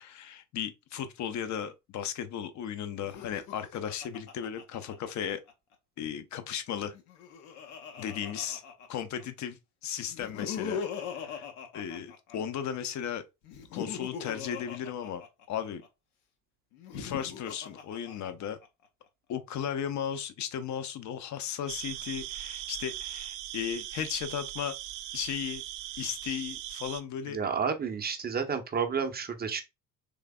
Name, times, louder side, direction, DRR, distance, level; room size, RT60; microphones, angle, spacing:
voice 1, 0.0-5.4 6.0-6.9 8.0-8.6 8.9-10.8 11.2-11.4 11.7-13.2 13.7-15.2 15.5-15.8 17.0-18.6 19.3-24.7 25.1-25.6 26.0-27.4, left 9 dB, 40° left, 0.6 m, -35 dB
Laughter, 3.0-5.5 6.8-9.2 10.1-12.6 13.4-15.9 16.7-18.7, left 7 dB, 70° left, 0.8 m, -40 dB
sound 1, 21.7-27.0, right 13 dB, 65° right, 0.5 m, -39 dB
voice 2, 27.3-29.6, right 6 dB, 20° right, 0.6 m, -31 dB
3.5 x 3.2 x 2.3 m
figure-of-eight pair, 60°, 48 cm